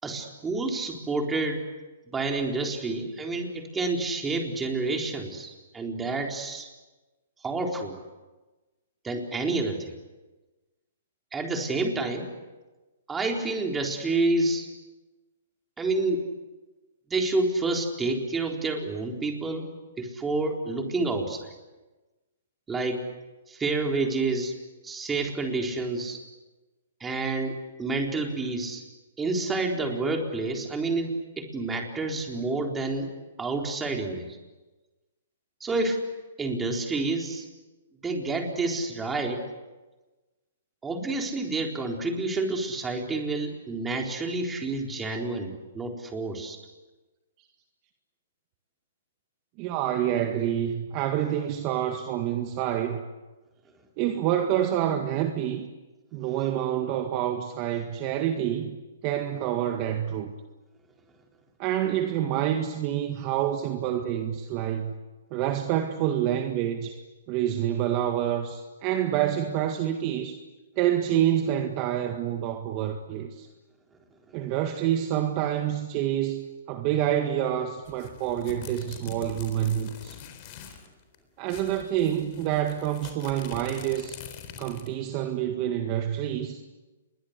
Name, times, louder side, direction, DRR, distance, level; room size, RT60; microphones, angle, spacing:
voice 1, 0.0-1.6 2.1-6.7 7.4-8.0 9.0-9.9 11.3-12.3 13.1-14.7 15.8-16.2 17.1-19.7 20.0-21.5 22.7-23.0 23.5-24.5 24.8-26.2 27.0-28.8 29.2-33.1 33.4-34.4 35.6-36.0 36.4-37.5 38.0-39.4 40.8-46.6, right 3 dB, 10° right, 2 dB, 4.1 m, -29 dB
voice 2, 49.6-53.0 54.0-55.7 56.1-58.7 59.0-60.3 61.6-64.9 65.3-67.0 67.3-70.4 70.7-73.5 74.3-80.2 80.7-80.8 81.4-84.2 84.6-86.6, right 11 dB, 35° right, 6 dB, 1.8 m, -27 dB
sound 1, 77.9-80.9 81.1-81.2 81.5-85.0, left 9 dB, 40° left, 4.0 m, -44 dB
29.0 x 22.5 x 8.2 m, 1.2 s
hypercardioid pair, 145°, 0 cm